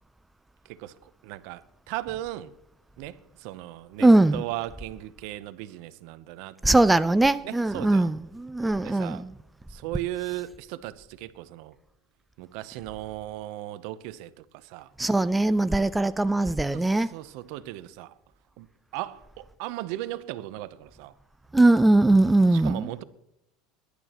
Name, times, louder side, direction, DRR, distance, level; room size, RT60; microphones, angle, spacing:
voice 1, 0.7-2.5 3.0-6.6 7.4-8.1 8.8-9.3 9.7-11.8 12.4-14.9 16.7-18.1 18.6-21.1 22.5-23.0, right 15 dB, 65° right, 0.8 m, -37 dB
voice 2, 4.0-4.4 6.6-9.3 15.0-17.1 21.5-22.9, right 2 dB, 5° right, 0.4 m, -20 dB
21.5 x 11.0 x 3.0 m
supercardioid pair, 140°, 0 cm